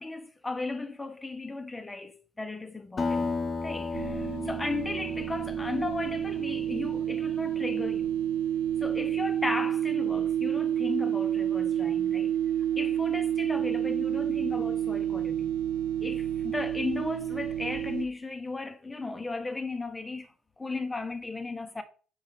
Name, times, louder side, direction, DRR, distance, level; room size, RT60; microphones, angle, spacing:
voice 1, 0.0-3.3 3.6-8.1 8.8-12.4 12.7-15.5 16.0-21.8, left 3 dB, 15° left, 1.1 m, -35 dB
Acoustic guitar, 3.0-7.8, left 4 dB, 35° left, 1.1 m, -35 dB
sound 1, 3.9-18.0, right 10 dB, 70° right, 0.3 m, -29 dB
5.4 x 5.2 x 5.2 m
figure-of-eight pair, 55°, 0 cm